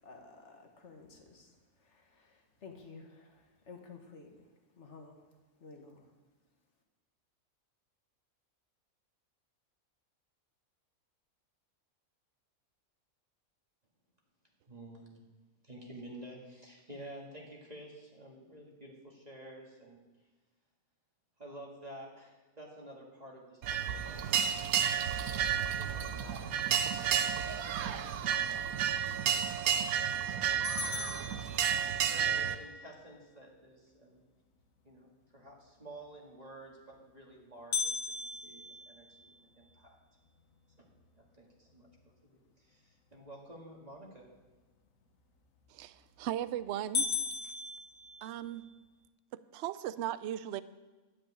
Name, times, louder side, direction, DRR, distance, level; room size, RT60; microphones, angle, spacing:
voice 1, 0.0-5.2 5.6-6.1, left 4 dB, 55° left, 2 dB, 1.9 m, -53 dB
voice 2, 14.7-15.2 15.6-20.0 21.4-26.5 26.8-29.4 31.6-34.2 34.8-38.0 38.3-40.0 40.8-40.9 41.1-41.9 42.3-44.3, right 1 dB, 30° right, -2 dB, 1.9 m, -52 dB
sound 1, 23.6-32.5, right 9 dB, 85° right, 1.1 m, -31 dB
sound 2, 30.6-32.2 37.7-39.9 40.4-40.5 41.0-41.1 41.7-42.1 45.7-46.1 46.5-46.6 46.9-48.7, left 5 dB, 70° left, 1.4 m, -37 dB
voice 3, 45.7-47.1 48.2-48.6 49.5-50.6, right 11 dB, 65° right, 15 dB, 0.7 m, -37 dB
12.0 x 5.5 x 8.6 m, 1.2 s
omnidirectional pair, 1.5 m